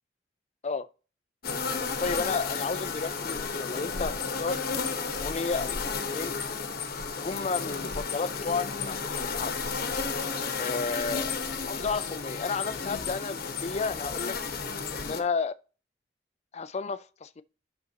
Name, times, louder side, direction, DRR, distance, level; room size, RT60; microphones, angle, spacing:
sound 1, 1.4-15.2, left 5 dB, 60° left, 1.1 m, -33 dB
voice 1, 2.0-4.6 5.1-6.4 7.2-9.5 10.6-11.3 11.7-14.4 14.9-15.6 16.5-17.4, left 4 dB, 40° left, 0.5 m, -32 dB
11.0 x 6.3 x 2.9 m
head